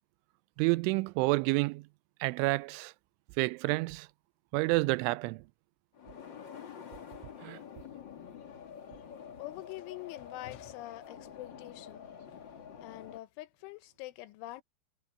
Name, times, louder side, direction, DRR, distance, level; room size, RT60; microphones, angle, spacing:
voice 1, 0.6-1.8 2.2-2.9 3.4-4.1 4.5-5.4 7.4-7.6, right 24 dB, 90° right, 3.0 m, -29 dB
sound 1, 5.9-13.2, left 8 dB, 60° left, 1.2 m, -48 dB
voice 2, 9.4-12.1 12.8-14.6, left 18 dB, 85° left, 3.3 m, -45 dB
omnidirectional pair, 5.4 m